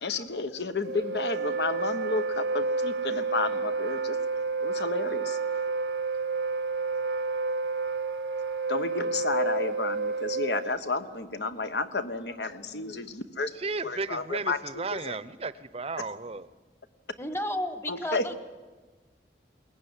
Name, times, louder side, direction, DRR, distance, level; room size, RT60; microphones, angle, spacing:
voice 1, 0.0-4.2 4.6-5.4 8.7-15.2 17.9-18.4, left 3 dB, 70° left, 1.3 m, -32 dB
Wind instrument woodwind instrument, 0.8-10.8, right 4 dB, 70° right, 0.9 m, -30 dB
voice 2, 13.6-16.5, right 3 dB, 35° right, 0.7 m, -34 dB
voice 3, 17.2-18.4, left 1 dB, 15° left, 1.3 m, -32 dB
22.5 x 19.0 x 9.9 m
head